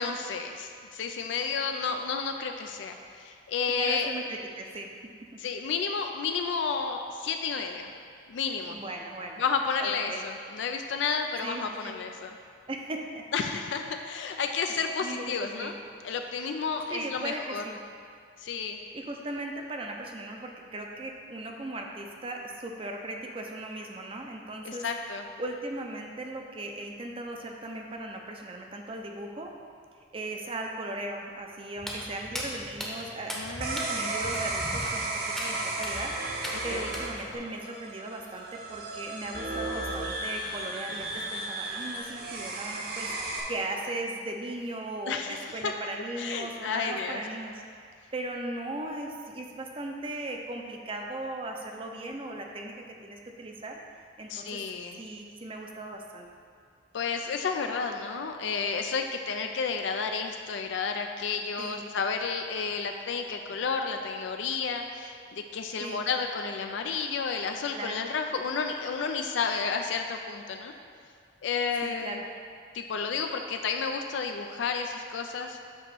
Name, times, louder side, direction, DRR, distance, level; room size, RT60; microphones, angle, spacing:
voice 1, 0.0-4.1 5.4-7.9 8.3-8.8 9.4-12.4 13.3-15.7 16.0-17.6 18.4-18.8 24.6-25.2 33.3-34.0 36.5-36.9 45.1-45.7 46.2-47.2 54.3-55.0 56.9-70.7 71.4-72.2 72.7-75.6, left 5 dB, 70° left, 4 dB, 0.4 m, -31 dB
voice 2, 3.7-4.9 5.3-5.4 8.7-9.4 9.8-10.2 11.4-12.0 12.7-13.2 15.0-15.7 16.9-17.8 18.9-24.9 25.4-29.5 30.1-47.6 48.1-53.8 54.2-54.6 55.0-56.3 61.6-61.8 65.8-66.0 67.7-68.1 71.8-72.2, right 2 dB, 30° right, 2 dB, 0.6 m, -38 dB
Walk footsteps, 31.8-37.4, equal, ahead, 0.8 m, -39 dB
sound 1, 33.6-43.4, right 2 dB, 55° right, 0.9 m, -34 dB
7.6 x 3.0 x 6.1 m, 2.2 s
head